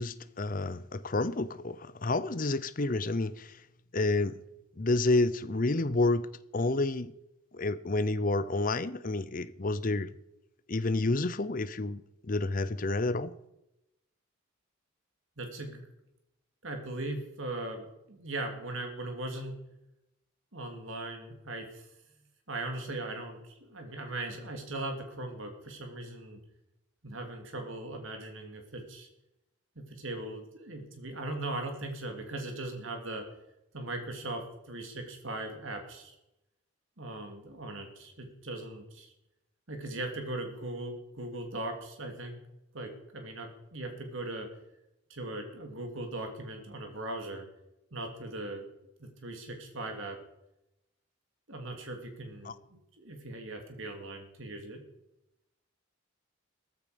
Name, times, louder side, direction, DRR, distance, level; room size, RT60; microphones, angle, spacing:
voice 1, 0.0-3.6 3.9-4.4 4.8-6.3 6.5-7.1 7.5-10.1 10.7-13.3 52.4-52.5, left 2 dB, 40° left, 0.7 m, -29 dB
voice 2, 15.4-15.9 16.6-19.5 20.5-21.8 22.5-26.4 27.0-29.1 29.7-33.2 33.7-36.1 37.0-39.1 39.7-42.4 42.7-44.5 45.1-47.5 47.9-48.7 49.0-50.2 51.5-54.8, right 2 dB, 70° right, 3.0 m, -39 dB
15.5 x 14.0 x 5.2 m
head